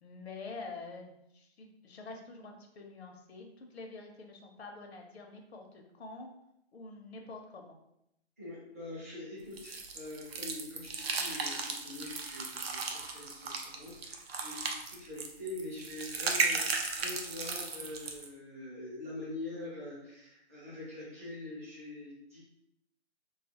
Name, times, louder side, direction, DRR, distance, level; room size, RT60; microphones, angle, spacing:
voice 1, 0.0-6.3 6.7-7.8, left 3 dB, 65° left, 2 dB, 0.7 m, -47 dB
voice 2, 8.4-22.4, left 2 dB, 15° right, -9 dB, 0.6 m, -44 dB
sound 1, 9.6-18.3, right 4 dB, 60° right, 0.6 m, -36 dB
3.4 x 2.4 x 2.8 m, 0.79 s
hypercardioid pair, 170°, 34 cm